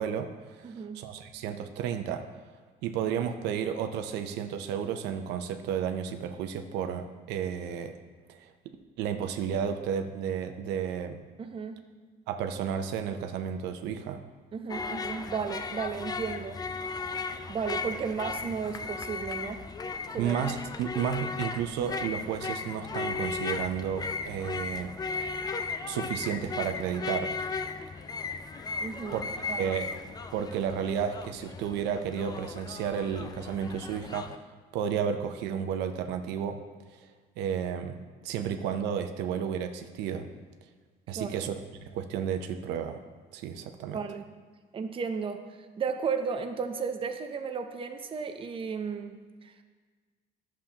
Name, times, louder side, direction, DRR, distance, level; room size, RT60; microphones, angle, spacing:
voice 1, 0.0-2.3 2.8-8.0 8.3-8.5 9.0-11.2 12.3-14.2 20.2-24.9 25.9-27.3 29.1-29.2 29.6-29.9 30.3-34.4 34.7-36.6 36.9-37.1 37.4-38.0 38.2-40.3 41.1-41.6 41.8-43.0 43.3-44.0, right 8 dB, 85° right, 7 dB, 0.6 m, -32 dB
voice 2, 0.6-1.0 11.4-11.8 14.5-16.6 17.5-19.6 20.1-20.4 28.8-29.2 29.5-29.8 41.2-41.4 43.9-44.3 44.7-45.4 45.8-49.6, right 5 dB, 30° right, 6 dB, 0.7 m, -34 dB
sound 1, 14.7-34.4, left 4 dB, 25° left, 0.4 m, -36 dB
11.5 x 7.3 x 2.9 m, 1.5 s
cardioid pair, 115°, 17 cm